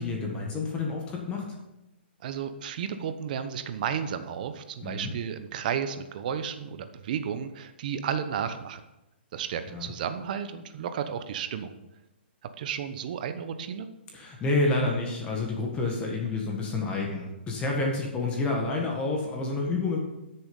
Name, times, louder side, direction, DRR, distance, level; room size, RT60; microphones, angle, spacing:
voice 1, 0.0-1.4 4.8-5.1 9.7-9.9 14.1-20.0, left 3 dB, 15° left, 0 dB, 1.6 m, -29 dB
voice 2, 2.2-8.8 9.3-11.7 12.6-13.9, right 8 dB, 45° right, 10 dB, 0.9 m, -33 dB
12.5 x 6.9 x 5.3 m, 0.95 s
hypercardioid pair, 150°, 6 cm